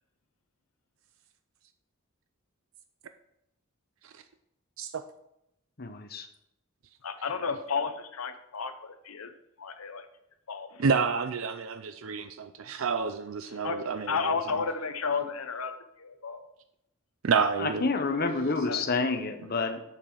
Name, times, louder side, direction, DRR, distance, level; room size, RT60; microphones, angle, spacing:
voice 1, 5.8-6.3 17.6-19.8, left 3 dB, 45° left, 7 dB, 0.9 m, -29 dB
voice 2, 7.0-10.1 10.5-10.8 13.5-16.5 18.6-19.0, left 5 dB, 85° left, 9 dB, 0.8 m, -33 dB
voice 3, 10.8-14.3 17.2-17.9, right 5 dB, 65° right, 9 dB, 0.5 m, -29 dB
7.6 x 7.2 x 4.7 m, 0.81 s
head